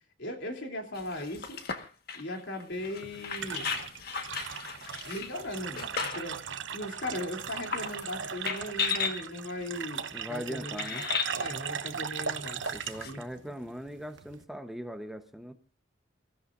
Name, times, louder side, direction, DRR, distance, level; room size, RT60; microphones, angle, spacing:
voice 1, 0.2-1.6 2.1-3.7 5.0-11.1 11.4-12.6 13.0-13.5, left 1 dB, 80° left, 3 dB, 3.2 m, -38 dB
sound 1, 0.9-6.4 6.9-7.0 7.6-8.1 8.5-9.2 10.0-10.1 10.8-11.4 12.6-13.1, left 6 dB, 55° left, 1.6 m, -35 dB
sound 2, 2.7-14.4, right 6 dB, 90° right, 0.9 m, -38 dB
voice 2, 10.1-11.1 12.7-15.5, equal, ahead, 7 dB, 1.0 m, -40 dB
28.0 x 16.0 x 2.6 m, 0.34 s
head